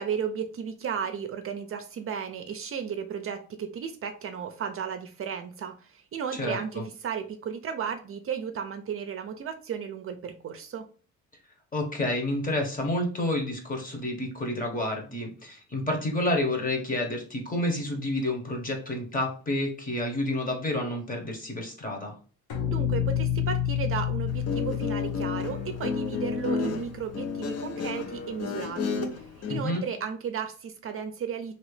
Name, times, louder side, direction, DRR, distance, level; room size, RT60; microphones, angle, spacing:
voice 1, 0.0-10.9 22.7-31.5, right 7 dB, 45° right, 7 dB, 0.5 m, -34 dB
voice 2, 6.4-6.8 11.7-22.1 29.5-29.8, left 1 dB, 30° left, 2 dB, 1.1 m, -29 dB
sound 1, 22.5-27.7, left 9 dB, 85° left, 1.0 m, -30 dB
Guitar, 24.3-29.6, left 5 dB, 55° left, 0.7 m, -32 dB
2.9 x 2.9 x 3.2 m, 0.40 s
cardioid pair, 90°, 30 cm